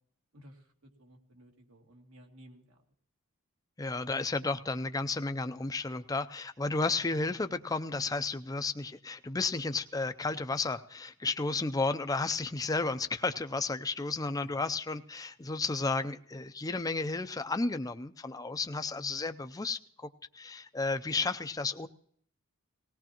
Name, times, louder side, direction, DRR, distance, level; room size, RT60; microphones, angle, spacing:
voice 1, 0.3-2.8 14.4-14.5 18.9-19.4, equal, 80° right, 1 dB, 2.5 m, -54 dB
voice 2, 3.8-20.1 20.3-21.9, left 3 dB, 15° left, 9 dB, 0.5 m, -33 dB
19.0 x 18.0 x 3.0 m, 0.63 s
head